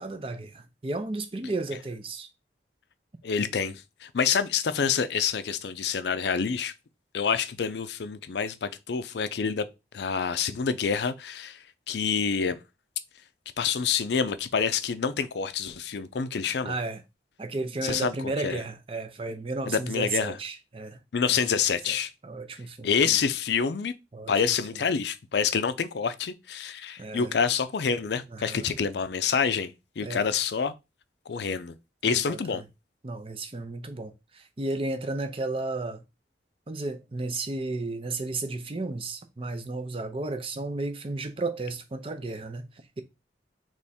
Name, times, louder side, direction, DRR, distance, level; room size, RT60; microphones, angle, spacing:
voice 1, 0.0-2.3 16.6-17.0 17.4-21.0 21.3-21.4 21.9-22.0 22.2-23.2 24.1-24.3 27.0-27.4 28.3-28.7 30.0-30.3 32.1-32.6 33.0-36.0 36.7-43.0, right 2 dB, 30° right, 0.5 m, -33 dB
voice 2, 3.2-6.7 7.1-9.7 9.9-12.6 13.6-16.8 17.8-18.1 18.4-18.6 19.7-20.3 21.1-22.1 22.8-23.9 24.3-30.7 31.3-31.7 32.0-32.6, left 6 dB, 70° left, 0.4 m, -27 dB
3.5 x 3.1 x 4.1 m
head